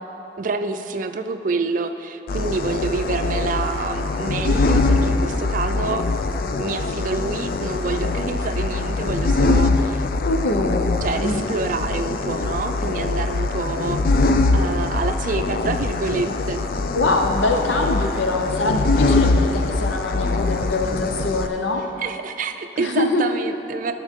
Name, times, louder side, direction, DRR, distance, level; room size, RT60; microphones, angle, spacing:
voice 1, 0.4-10.7 11.0-14.3 14.5-16.6 22.0-23.9, right 4 dB, 45° right, 8 dB, 0.4 m, -27 dB
sound 1, 2.3-21.5, left 3 dB, 50° left, 0.4 m, -22 dB
voice 2, 10.2-11.5 16.9-21.8 22.8-23.2, left 2 dB, 85° left, 3 dB, 0.7 m, -23 dB
14.5 x 6.2 x 3.6 m, 3.0 s
head